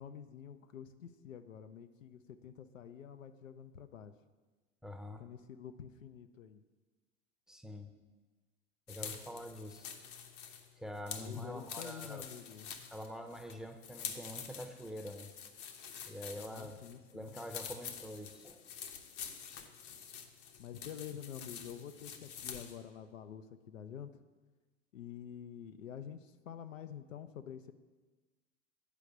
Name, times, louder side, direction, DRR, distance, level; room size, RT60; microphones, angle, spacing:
voice 1, 0.0-4.1 5.2-6.6 11.2-12.7 16.3-17.3 20.6-24.2 24.9-27.7, left 8 dB, 85° left, 9 dB, 0.6 m, -48 dB
voice 2, 4.8-5.2 7.5-7.9 8.9-9.9 10.8-12.3 12.9-15.3 16.1-16.8 17.1-18.6 19.6-19.7, left 1 dB, ahead, 6 dB, 0.6 m, -45 dB
sound 1, 8.9-22.8, left 7 dB, 60° left, 1.0 m, -47 dB
8.4 x 4.9 x 6.5 m, 1.3 s
hypercardioid pair, 85°, 38 cm